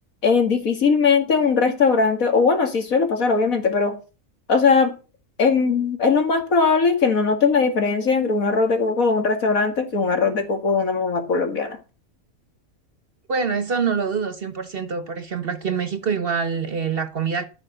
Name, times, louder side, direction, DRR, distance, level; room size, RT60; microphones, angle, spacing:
voice 1, 0.2-3.9 4.5-4.9 5.4-11.8, left 4 dB, 75° left, 2.5 m, -19 dB
voice 2, 13.3-17.5, right 6 dB, 50° right, 0.9 m, -25 dB
14.0 x 6.1 x 6.7 m
omnidirectional pair, 1.5 m